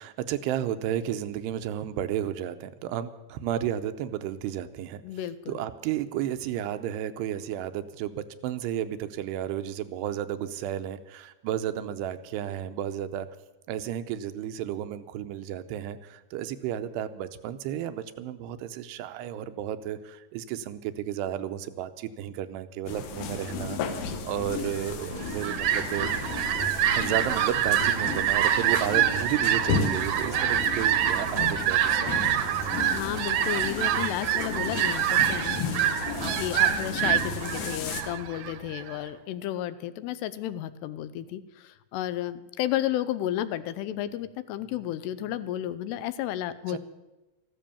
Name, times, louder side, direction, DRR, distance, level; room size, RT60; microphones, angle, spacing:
voice 1, 0.0-5.0 5.5-13.3 13.7-26.1 27.0-32.4 46.7-46.8, right 11 dB, 85° right, 10 dB, 2.8 m, -33 dB
voice 2, 5.0-5.6 32.8-35.8 36.4-46.8, left 12 dB, 85° left, 14 dB, 2.7 m, -32 dB
sound 1, 22.9-38.0, left 4 dB, 65° left, 2.0 m, -34 dB
Fowl, 25.0-39.0, right 10 dB, 70° right, 2.2 m, -26 dB
14.5 x 13.0 x 7.1 m, 1.1 s
omnidirectional pair, 4.8 m